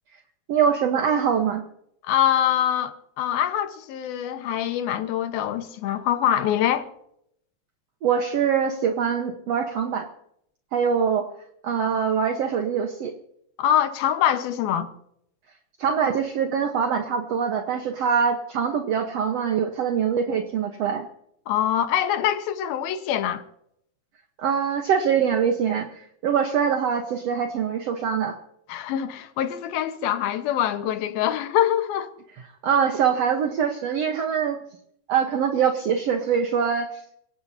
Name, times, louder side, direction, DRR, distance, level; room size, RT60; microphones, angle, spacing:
voice 1, 0.5-1.6 8.0-10.1 10.7-11.2 11.6-13.1 15.8-21.1 24.4-28.4 32.6-34.6 35.1-37.1, right 7 dB, 65° right, 1.6 m, -23 dB
voice 2, 2.1-6.9 13.6-14.9 21.5-23.4 28.7-32.1, left 10 dB, 75° left, 3.0 m, -24 dB
27.5 x 17.5 x 2.8 m
omnidirectional pair, 4.4 m